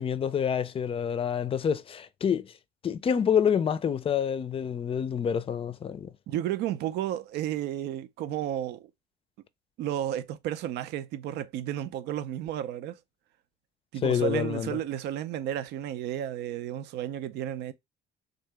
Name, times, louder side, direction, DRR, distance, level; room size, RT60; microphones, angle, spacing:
voice 1, 0.0-2.5 2.8-6.1 14.0-14.8, left 7 dB, 35° left, 0.4 m, -27 dB
voice 2, 6.3-8.9 9.8-13.0 13.9-17.7, right 11 dB, 85° right, 0.5 m, -32 dB
3.8 x 2.8 x 3.3 m
cardioid pair, 110°, 17 cm